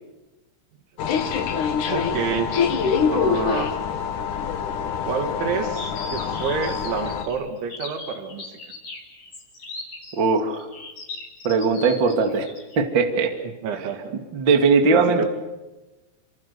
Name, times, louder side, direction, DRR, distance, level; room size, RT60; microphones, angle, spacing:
sound 1, 1.0-7.3, left 6 dB, 60° left, 2.3 m, -25 dB
voice 1, 1.9-2.6 3.1-3.7 5.1-8.6 13.4-14.2 14.9-15.3, right 6 dB, 70° right, 6 dB, 4.4 m, -28 dB
sound 2, 5.7-12.8, left 3 dB, 35° left, 6.0 m, -38 dB
voice 2, 10.2-10.7 11.4-12.5 12.7-13.3 14.3-15.2, right 4 dB, 45° right, 5 dB, 1.6 m, -19 dB
29.0 x 25.5 x 6.9 m, 1.1 s
omnidirectional pair, 5.9 m